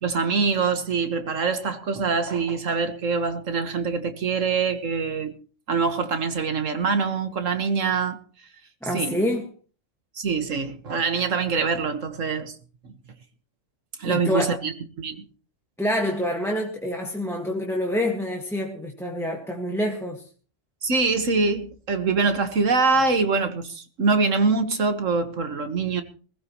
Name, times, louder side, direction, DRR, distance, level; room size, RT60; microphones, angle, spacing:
voice 1, 0.0-5.4 5.7-8.2 8.9-9.2 10.2-12.5 12.8-12.9 14.0-14.7 15.0-15.2 20.8-26.0, right 4 dB, 85° right, 1.9 m, -24 dB
voice 2, 8.8-9.5 14.0-14.6 15.8-20.2, left 1 dB, ahead, 1.7 m, -27 dB
21.0 x 15.5 x 3.1 m
omnidirectional pair, 1.3 m